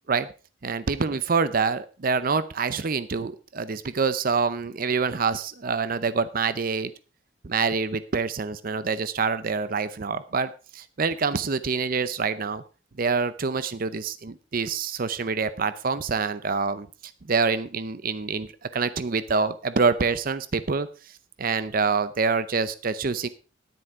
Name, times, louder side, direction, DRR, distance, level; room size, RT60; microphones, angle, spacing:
voice 1, 0.6-6.9 7.4-12.6 13.0-16.9 17.3-20.9 21.4-23.3, right 5 dB, 45° right, 14 dB, 0.6 m, -26 dB
10.5 x 9.6 x 4.6 m, 0.34 s
head